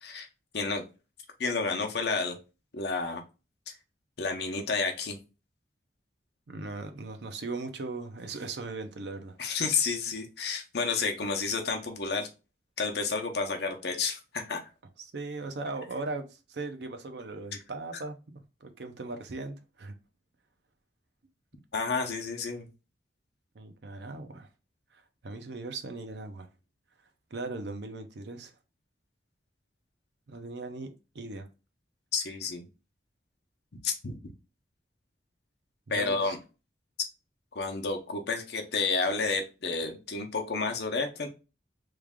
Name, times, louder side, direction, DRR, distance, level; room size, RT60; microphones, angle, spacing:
voice 1, 1.4-2.4 2.7-3.2 4.2-5.2 9.4-12.3 12.8-14.6 21.7-22.7 32.1-32.7 33.8-34.2 35.9-36.4 37.5-41.3, left 4 dB, 60° left, 0.7 m, -30 dB
voice 2, 6.5-9.4 15.0-19.9 23.5-24.5 24.9-26.5 27.3-28.5 30.3-31.5 35.9-36.4, right 3 dB, 70° right, 0.6 m, -39 dB
3.2 x 2.4 x 3.5 m
head